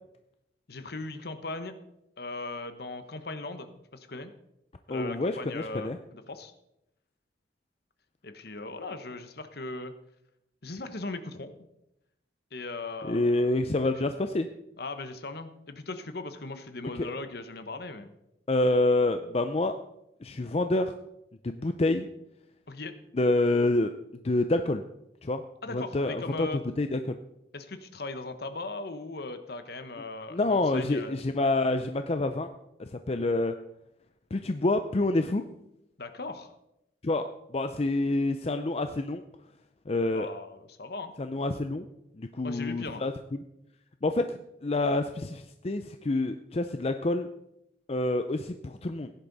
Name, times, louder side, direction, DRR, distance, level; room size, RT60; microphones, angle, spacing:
voice 1, 0.7-1.7 2.2-4.3 4.9-6.5 8.2-9.9 10.6-11.5 12.5-13.5 14.0-14.1 14.8-18.1 22.7-22.9 25.6-26.6 27.5-31.2 36.0-36.5 40.1-41.1 42.4-43.0, left 3 dB, 55° left, 9 dB, 1.1 m, -38 dB
voice 2, 4.9-6.0 13.1-14.5 16.9-17.1 18.5-19.7 20.2-20.9 21.4-22.1 23.1-23.9 24.2-24.8 25.2-25.4 25.7-26.5 26.8-27.2 30.3-32.5 32.8-33.5 34.3-35.4 37.0-37.2 37.5-39.2 39.9-40.3 41.2-41.9 42.2-43.4 44.0-47.3 47.9-49.1, left 2 dB, 35° left, 8 dB, 0.5 m, -27 dB
16.0 x 10.5 x 4.0 m, 0.84 s
head